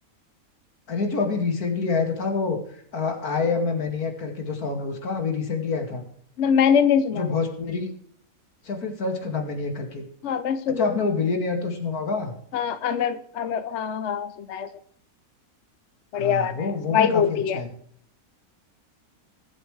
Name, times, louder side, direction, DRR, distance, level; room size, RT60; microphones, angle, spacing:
voice 1, 0.9-2.6 2.9-6.0 7.1-7.9 8.6-10.0 10.8-12.3 16.1-17.7, left 4 dB, 75° left, 4 dB, 2.7 m, -27 dB
voice 2, 6.4-7.3 10.2-11.1 12.5-14.7 16.1-17.6, left 7 dB, 55° left, 12 dB, 0.9 m, -23 dB
20.0 x 7.7 x 3.3 m, 0.62 s
omnidirectional pair, 1.6 m